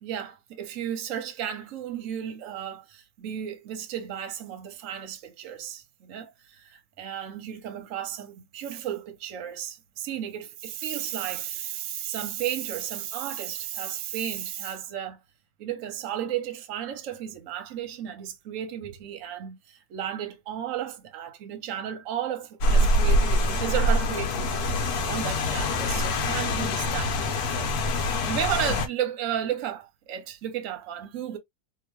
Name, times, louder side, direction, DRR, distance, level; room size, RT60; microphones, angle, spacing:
voice 1, 0.0-15.2 15.6-31.4, right 10 dB, 55° right, 0.9 m, -34 dB
Rain, 22.6-28.9, left 1 dB, 65° left, 1.1 m, -24 dB
2.9 x 2.5 x 3.0 m
omnidirectional pair, 1.9 m